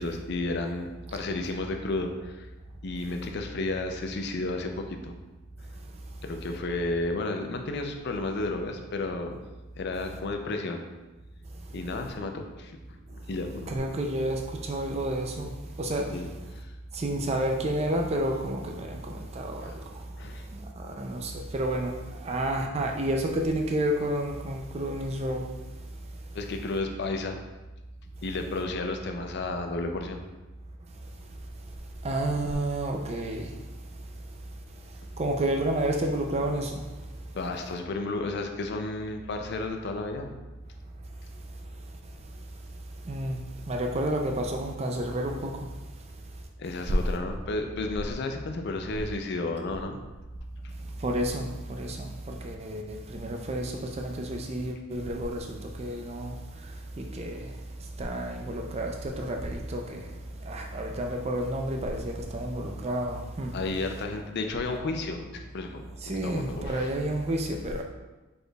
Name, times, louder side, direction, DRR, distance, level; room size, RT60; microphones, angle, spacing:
voice 1, 0.0-2.5 2.8-5.2 6.2-9.4 9.8-10.8 11.7-12.7 13.3-13.8 16.1-16.7 19.6-19.8 20.2-20.5 26.3-27.4 28.2-30.2 37.3-40.4 46.6-50.0 63.5-66.9, left 2 dB, 50° left, 5 dB, 0.4 m, -32 dB
voice 2, 13.7-15.5 15.8-16.1 16.9-20.0 20.8-25.5 32.0-33.6 35.2-36.9 43.1-43.4 43.7-45.7 51.0-56.4 56.6-56.7 57.0-57.6 58.0-60.1 60.4-63.5 66.0-67.8, right 1 dB, 30° right, 2 dB, 0.4 m, -30 dB
4.9 x 4.3 x 2.3 m, 1.1 s
head